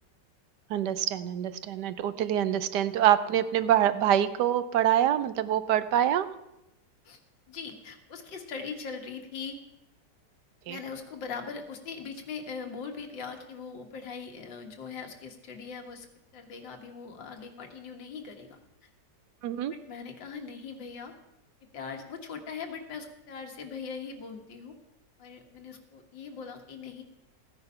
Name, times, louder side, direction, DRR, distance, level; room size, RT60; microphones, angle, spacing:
voice 1, 0.7-6.3 10.7-10.8 19.4-19.7, right 11 dB, 75° right, 13 dB, 1.2 m, -25 dB
voice 2, 7.5-9.6 10.7-16.1 16.3-18.9 19.7-21.1 21.7-24.8 25.2-27.0, left 5 dB, 90° left, 5 dB, 2.2 m, -41 dB
15.0 x 9.6 x 5.6 m, 0.91 s
omnidirectional pair, 1.9 m